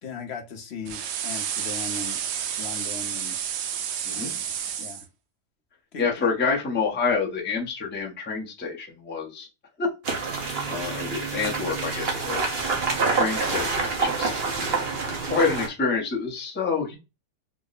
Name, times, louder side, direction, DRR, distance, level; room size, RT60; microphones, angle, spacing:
voice 1, 0.0-2.2 2.6-3.4 4.1-5.1 5.9-6.3, left 5 dB, 55° left, 3 dB, 0.8 m, -38 dB
sound 1, 0.9-5.0, right 8 dB, 85° right, 1.2 m, -30 dB
voice 2, 6.0-9.5 9.8-9.9 10.7-12.5 13.1-14.4 15.0-17.0, left 5 dB, 15° left, -1 dB, 0.4 m, -27 dB
sound 2, 10.0-15.7, right 4 dB, 45° right, 1.0 m, -27 dB
3.6 x 2.0 x 3.9 m, 0.26 s
omnidirectional pair, 1.7 m